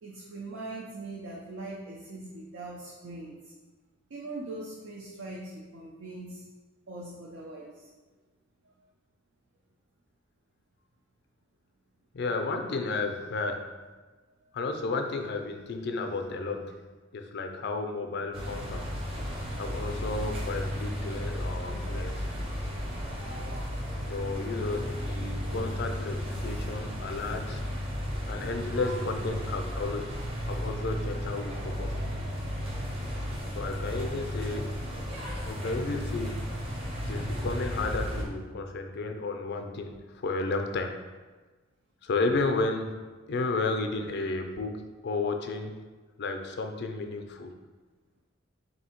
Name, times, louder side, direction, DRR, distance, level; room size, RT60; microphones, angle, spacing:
voice 1, 0.0-3.5 4.1-6.4 6.9-7.9 8.6-8.7 14.3-14.4, right 2 dB, 65° right, -3 dB, 0.5 m, -41 dB
voice 2, 12.1-13.7 14.5-16.8 17.1-18.9 19.6-22.3 24.1-27.6 28.3-30.2 30.4-32.0 33.5-34.8 35.4-36.6 37.1-41.0 42.0-45.8 46.2-47.5, left 3 dB, 55° left, 5 dB, 0.4 m, -33 dB
sound 1, 18.3-38.3, equal, 30° right, 0.7 m, -34 dB
3.4 x 2.7 x 4.3 m, 1.3 s
head